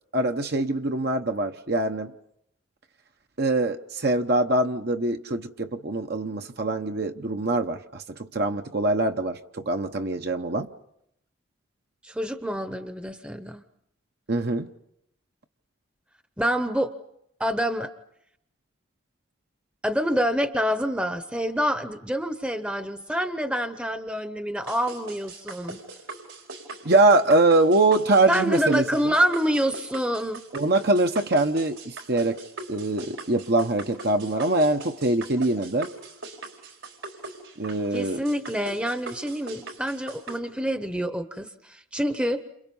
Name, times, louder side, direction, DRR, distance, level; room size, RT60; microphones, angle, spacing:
voice 1, 0.1-2.1 3.4-10.7 14.3-14.7 26.8-28.8 30.5-32.4 32.7-35.9 37.6-38.2, right 2 dB, 50° right, 5 dB, 0.9 m, -23 dB
voice 2, 12.0-13.6 16.4-16.9 17.4-17.9 19.8-25.8 28.3-30.4 37.9-42.5, equal, 5° right, 9 dB, 0.9 m, -27 dB
sound 1, 24.7-40.4, right 3 dB, 80° right, 5.0 m, -41 dB
29.5 x 27.5 x 5.5 m, 0.77 s
head